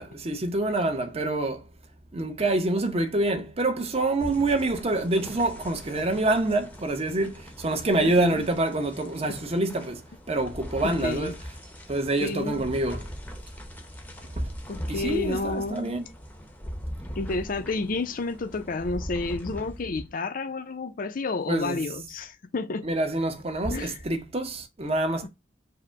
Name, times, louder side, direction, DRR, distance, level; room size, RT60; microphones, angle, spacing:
voice 1, 0.0-1.7 2.1-11.3 11.9-13.1 14.3-14.5 14.8-16.1 21.5-21.8 22.8-25.3, right 2 dB, 35° right, 0.8 m, -26 dB
sound 1, 4.2-20.1, equal, 10° left, 0.7 m, -41 dB
voice 2, 10.8-11.3 12.2-12.6 14.7-16.0 17.2-22.9 23.7-24.0, left 3 dB, 50° left, 0.5 m, -30 dB
4.8 x 2.1 x 4.4 m
head